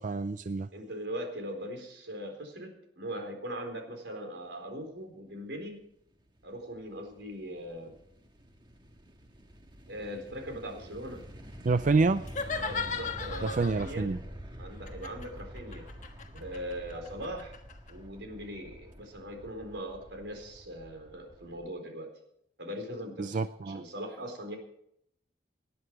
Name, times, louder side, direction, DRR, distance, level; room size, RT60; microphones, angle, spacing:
voice 1, 0.0-0.7 11.7-12.2 13.4-14.2 23.2-23.8, right 3 dB, 45° right, 12 dB, 0.4 m, -27 dB
voice 2, 0.7-5.8 6.4-7.9 9.9-11.2 12.6-14.1 14.6-15.9 16.3-17.5 17.9-22.1 22.6-24.6, equal, 85° right, 4 dB, 4.1 m, -40 dB
sound 1, 6.2-21.7, equal, 25° right, 1.5 m, -47 dB
sound 2, 12.2-14.0 14.9-17.9, left 5 dB, 45° left, 1.4 m, -37 dB
19.0 x 10.5 x 4.7 m, 0.72 s
head